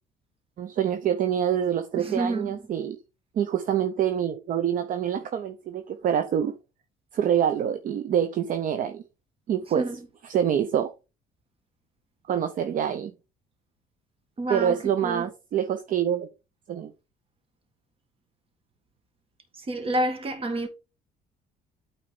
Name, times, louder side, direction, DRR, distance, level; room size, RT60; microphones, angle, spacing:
voice 1, 0.6-3.0 3.3-6.6 7.1-9.0 9.5-9.8 10.3-10.9 12.3-13.1 14.5-16.3 16.7-16.9, right 9 dB, 50° right, 0.7 m, -26 dB
voice 2, 2.0-2.6 9.6-10.1 14.4-15.3 19.5-20.7, right 1 dB, 35° right, 1.9 m, -29 dB
8.7 x 4.1 x 3.8 m
cardioid pair, 110°, 17 cm